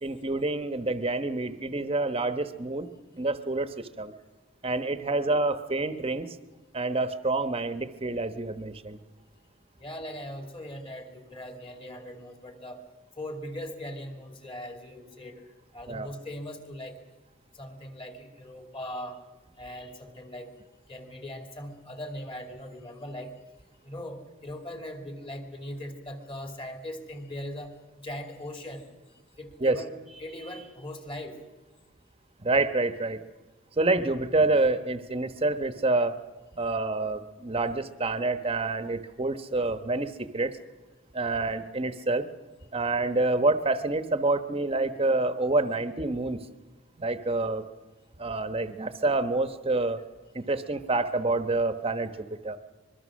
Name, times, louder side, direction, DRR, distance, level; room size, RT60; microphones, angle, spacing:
voice 1, 0.0-2.9 3.1-4.1 4.6-6.3 6.7-9.0 15.9-16.1 29.6-29.8 32.4-33.2 33.8-36.2 36.6-40.5 41.1-42.3 42.7-46.4 47.0-47.6 48.2-50.0 50.3-52.6, right 2 dB, 30° right, 10 dB, 1.0 m, -27 dB
voice 2, 9.8-12.8 13.2-15.4 15.7-17.0 17.5-19.2 19.6-20.5 20.9-23.3 23.8-27.7 28.0-28.9 29.4-31.4, left 1 dB, 30° left, 5 dB, 2.7 m, -40 dB
24.5 x 22.0 x 6.3 m, 1.2 s
head